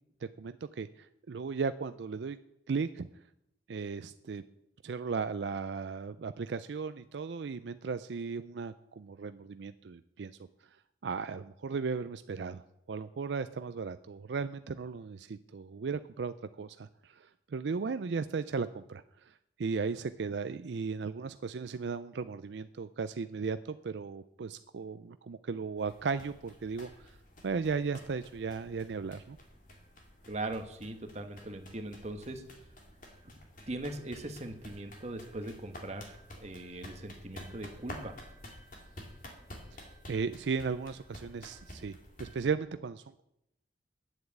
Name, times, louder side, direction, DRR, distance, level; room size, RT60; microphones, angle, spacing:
voice 1, 0.2-2.4 2.7-3.1 3.7-4.4 4.8-10.3 11.0-26.9 27.4-29.4 39.7-43.2, right 5 dB, 75° right, 11 dB, 0.4 m, -36 dB
sound 1, 25.8-42.4, left 1 dB, 45° left, 2.3 m, -51 dB
voice 2, 30.3-32.4 33.2-33.3 33.7-38.2, right 2 dB, 40° right, 6 dB, 1.2 m, -40 dB
9.4 x 8.0 x 8.2 m, 0.80 s
head